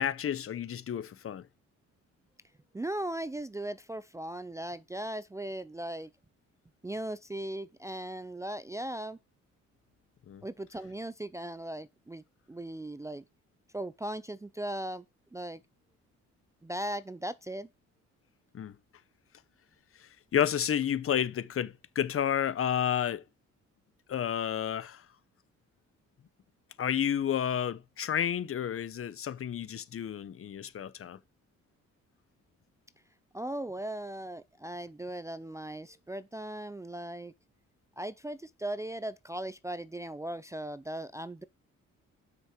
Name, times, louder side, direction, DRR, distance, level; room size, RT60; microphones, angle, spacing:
voice 1, 0.0-1.5 10.3-10.4 18.5-18.7 20.0-23.2 24.1-25.0 26.8-31.2, left 9 dB, 45° left, 0.9 m, -31 dB
voice 2, 2.7-6.1 6.8-9.2 10.4-13.2 13.7-15.0 15.3-15.6 16.6-17.7 33.3-37.3 38.0-41.4, right 1 dB, 10° right, 0.4 m, -38 dB
8.1 x 6.2 x 6.0 m
cardioid pair, 90°, 30 cm